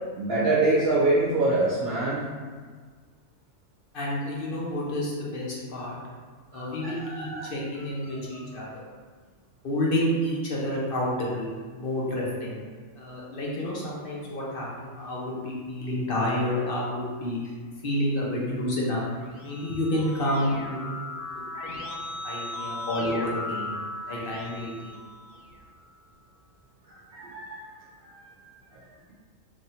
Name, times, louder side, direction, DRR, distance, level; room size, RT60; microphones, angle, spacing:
voice 1, 0.2-2.2 6.5-7.5 8.1-8.4 26.9-27.6 28.0-28.4 28.7-28.8, right 2 dB, 55° right, -8 dB, 1.0 m, -26 dB
voice 2, 3.9-5.9 6.5-8.8 9.6-11.5 11.8-12.6 13.0-17.4 17.8-19.0 19.4-21.2 21.6-21.8 22.2-23.7 24.1-25.0, left 1 dB, 50° left, -4 dB, 0.8 m, -29 dB
Keyboard (musical), 19.1-25.7, left 2 dB, 75° left, 0.9 m, -37 dB
3.0 x 2.7 x 4.1 m, 1.5 s
omnidirectional pair, 1.4 m